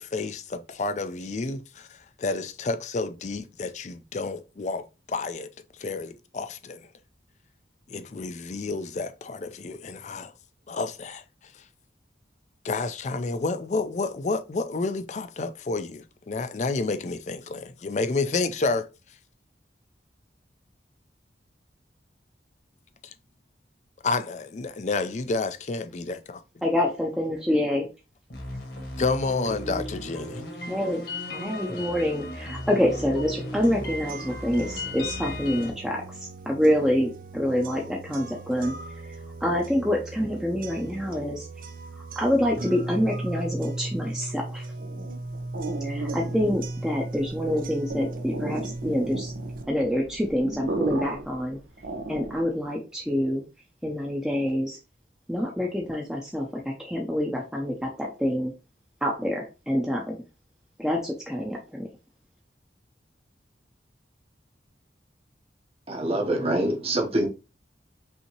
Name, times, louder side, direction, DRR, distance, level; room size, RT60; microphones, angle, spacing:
voice 1, 0.0-5.5 5.8-6.9 7.9-10.3 10.7-11.6 12.6-18.9 23.0-23.1 24.0-26.4 29.0-30.4, left 3 dB, 40° left, 0.4 m, -30 dB
voice 2, 26.6-27.8 30.7-36.0 36.5-38.8 39.4-41.5 42.2-44.6 45.8-49.3 49.7-51.6 52.1-53.4 53.8-54.8 55.3-58.5 59.0-60.2 60.8-61.9, equal, 5° right, 0.6 m, -26 dB
sound 1, 28.3-35.7, left 1 dB, 65° left, 1.5 m, -36 dB
sound 2, 33.6-49.6, right 2 dB, 50° right, 0.4 m, -37 dB
sound 3, 44.8-52.6, right 2 dB, 90° right, 1.0 m, -35 dB
voice 3, 65.9-67.3, right 1 dB, 35° right, 0.8 m, -25 dB
5.5 x 2.8 x 2.9 m
head